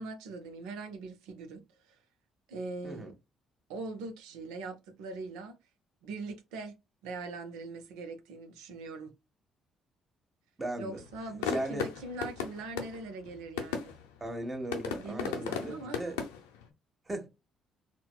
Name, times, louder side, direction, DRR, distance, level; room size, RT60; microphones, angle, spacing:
voice 1, 0.0-2.0 2.5-3.1 3.7-5.6 6.0-6.8 7.0-9.1 10.8-14.0 15.0-16.1, right 3 dB, 80° right, 0.6 m, -41 dB
voice 2, 10.6-11.0 11.5-11.9 14.2-16.2 17.1-17.3, right 1 dB, 25° right, 1.4 m, -37 dB
sound 1, 10.9-16.7, left 7 dB, 90° left, 0.6 m, -38 dB
4.0 x 2.1 x 2.3 m
hypercardioid pair, 50°, 0 cm